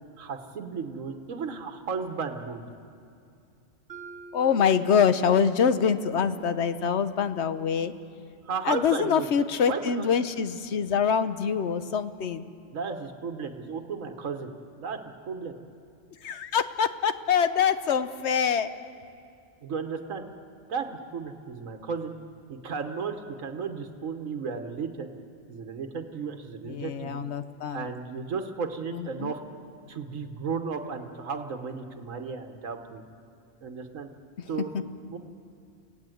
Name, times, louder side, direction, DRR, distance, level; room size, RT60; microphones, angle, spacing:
voice 1, 0.2-2.7 8.4-9.3 9.7-10.1 12.7-14.5 14.8-15.0 15.3-15.6 19.6-20.2 20.7-20.9 21.1-22.1 22.5-25.1 25.5-27.2 27.7-29.4 29.9-33.0 33.6-34.1 34.5-34.7 35.1-35.2, right 5 dB, 85° right, 6 dB, 1.6 m, -34 dB
Mallet percussion, 3.9-7.9, right 4 dB, 40° right, 2.0 m, -49 dB
voice 2, 4.3-7.9 8.6-12.5 16.2-18.7 26.7-27.9 28.9-29.3, left 7 dB, 60° left, 11 dB, 1.1 m, -25 dB
29.0 x 17.0 x 7.9 m, 2.5 s
omnidirectional pair, 1.3 m